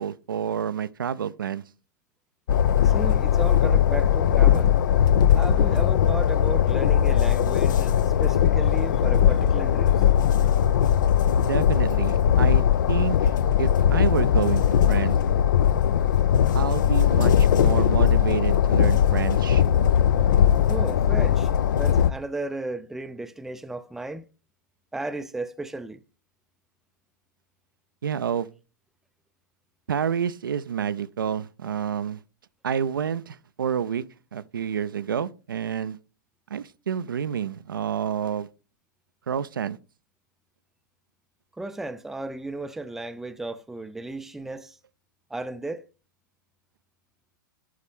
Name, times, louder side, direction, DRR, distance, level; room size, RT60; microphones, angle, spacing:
voice 1, 0.0-1.6 11.4-15.2 16.5-19.6 28.0-28.5 29.9-32.2 32.6-34.0 34.3-36.0 36.5-38.5 39.3-39.8, right 8 dB, 75° right, 0.5 m, -29 dB
Train, 2.5-22.1, left 9 dB, 60° left, 0.5 m, -20 dB
voice 2, 2.8-4.8 5.4-9.9 20.7-21.5 21.8-24.3 24.9-26.0 41.6-44.8 45.3-45.8, right 2 dB, 5° right, 0.4 m, -34 dB
11.5 x 4.0 x 3.5 m
figure-of-eight pair, 105°, 11 cm